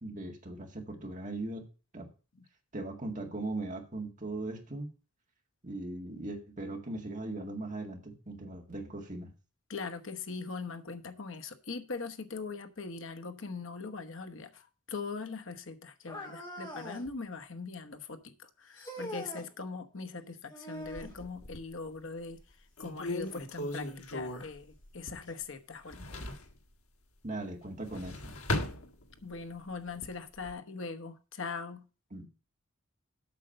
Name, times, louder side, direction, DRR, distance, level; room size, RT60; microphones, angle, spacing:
voice 1, 0.0-1.7 1.9-2.1 2.7-4.9 5.6-9.3 27.2-28.3 32.1-32.3, right 2 dB, 35° right, 2 dB, 2.0 m, -39 dB
voice 2, 9.7-22.4 22.8-26.1 29.2-31.8, left 4 dB, 60° left, 8 dB, 1.1 m, -41 dB
sound 1, 16.1-17.1 18.7-19.5 20.5-21.2 23.3-23.4 24.2-24.3 25.3-25.4, equal, 20° left, 2.7 m, -42 dB
sound 2, 20.8-21.8 22.3-22.4 22.8-25.4 25.7-26.5 27.7-29.4 29.9-30.5, left 1 dB, 80° left, 1.5 m, -38 dB
8.4 x 6.5 x 6.7 m, 0.33 s
head